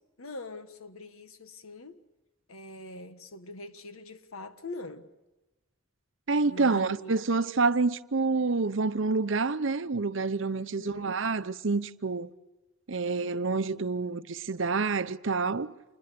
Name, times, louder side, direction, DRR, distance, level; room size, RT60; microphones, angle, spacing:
voice 1, 0.2-2.0 2.5-5.1 6.5-7.2 10.6-11.1, left 2 dB, 90° left, 1.5 m, -43 dB
voice 2, 6.3-12.3 12.9-15.7, right 4 dB, 65° right, 0.8 m, -28 dB
28.0 x 21.0 x 6.8 m
head